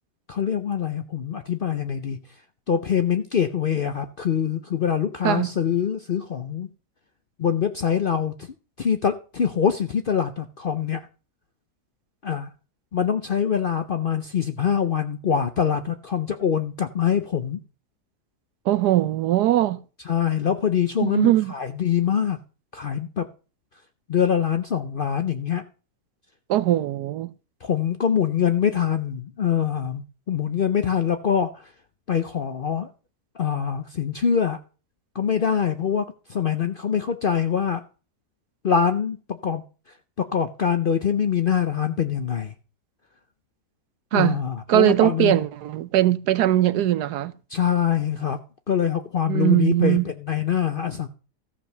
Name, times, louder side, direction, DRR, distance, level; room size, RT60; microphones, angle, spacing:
voice 1, 0.3-2.2 2.7-6.7 7.4-8.3 8.8-11.1 12.2-12.5 12.9-17.6 20.1-22.4 22.7-23.3 24.1-25.6 27.6-31.7 32.1-32.9 33.4-34.6 35.1-37.8 38.6-39.6 40.2-42.5 44.1-45.4 47.5-48.4 48.7-51.1, left 8 dB, 55° left, 0.6 m, -24 dB
voice 2, 18.7-19.8 21.0-21.5 26.5-27.3 44.1-44.3 44.7-47.3 49.3-50.1, right 14 dB, 85° right, 1.3 m, -20 dB
14.0 x 5.0 x 6.6 m
omnidirectional pair, 1.7 m